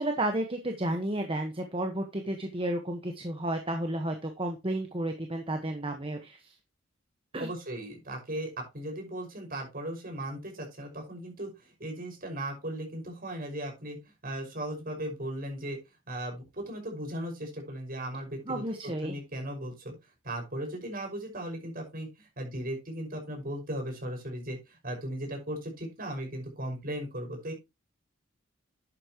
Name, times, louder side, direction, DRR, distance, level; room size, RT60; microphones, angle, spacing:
voice 1, 0.0-6.5 7.3-7.5 18.5-19.2, right 1 dB, 25° right, 5 dB, 1.3 m, -32 dB
voice 2, 7.4-14.0 14.2-15.8 16.1-18.6 19.0-19.9 20.2-27.5, right 1 dB, 45° right, 2 dB, 5.8 m, -37 dB
11.5 x 8.9 x 3.0 m, 0.23 s
head